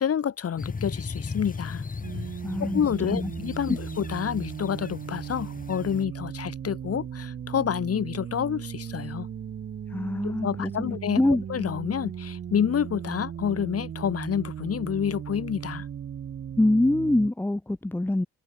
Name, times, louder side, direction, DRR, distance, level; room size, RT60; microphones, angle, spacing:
voice 1, 0.0-1.8 2.6-9.3 10.2-15.9, left 8 dB, 50° left, 2.6 m, -28 dB
sound 1, 0.6-6.0, left 4 dB, 25° left, 2.6 m, -37 dB
sound 2, 2.0-17.3, right 8 dB, 40° right, 0.8 m, -37 dB
voice 2, 2.4-2.8 3.1-3.3 3.7-3.8 9.9-11.4 16.6-18.3, left 1 dB, 5° left, 0.7 m, -25 dB
cardioid pair, 90°, 30 cm